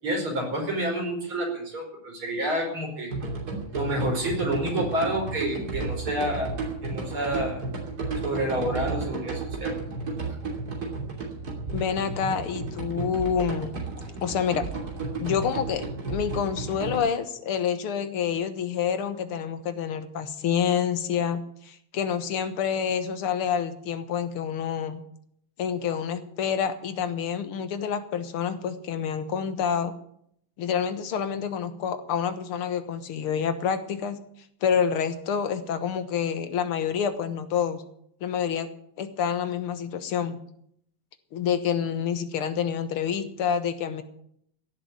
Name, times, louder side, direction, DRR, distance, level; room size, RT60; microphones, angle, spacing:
voice 1, 0.0-3.1 3.7-6.5 6.8-7.6 8.2-9.7, right 1 dB, 70° right, 0 dB, 5.8 m, -29 dB
sound 1, 3.1-17.0, right 3 dB, 45° right, 3.4 m, -33 dB
voice 2, 11.7-13.7 14.2-14.7 15.2-25.0 25.6-29.9 30.6-34.2 34.6-37.8 38.2-38.7 39.0-40.4 41.3-44.0, left 7 dB, 80° left, 11 dB, 2.1 m, -28 dB
16.0 x 7.6 x 9.6 m, 0.70 s
omnidirectional pair, 2.4 m